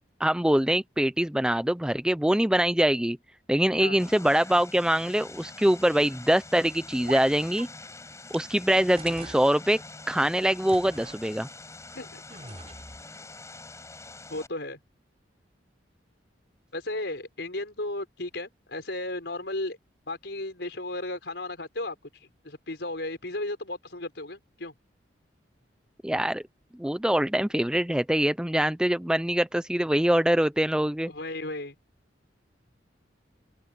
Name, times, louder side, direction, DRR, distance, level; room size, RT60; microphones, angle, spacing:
voice 1, 0.2-3.2 3.5-7.7 8.3-9.8 10.1-11.5 26.0-26.4 26.8-31.1, right 1 dB, 5° right, 0.5 m, -24 dB
Vehicle, 4.0-14.5, left 3 dB, 15° left, 5.9 m, -45 dB
sound 1, 7.1-7.3 7.6-7.7 8.3-8.4 9.0-9.5 10.7-11.2 12.3-13.0, right 3 dB, 35° right, 5.2 m, -41 dB
voice 2, 14.3-14.8 16.7-19.8 20.1-21.9 22.2-24.7 31.1-31.7, left 2 dB, 70° left, 5.0 m, -34 dB
open air
head